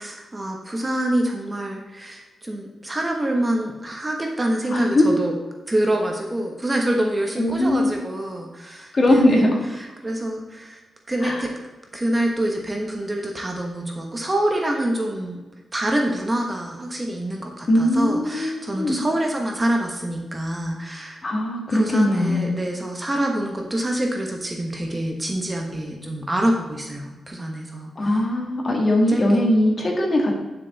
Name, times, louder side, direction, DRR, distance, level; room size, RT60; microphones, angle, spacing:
voice 1, 0.0-5.3 5.7-9.4 9.8-10.8 11.1-11.5 11.9-15.4 15.7-21.2 21.7-28.2 29.1-29.2, right 1 dB, 20° right, 1 dB, 1.1 m, -26 dB
voice 2, 4.7-5.1 7.3-7.9 8.9-9.6 11.2-11.4 17.7-19.0 21.2-22.6 27.9-30.4, left 1 dB, 30° left, 1 dB, 1.8 m, -20 dB
9.3 x 6.8 x 4.1 m, 1.2 s
wide cardioid pair, 140°, 0 cm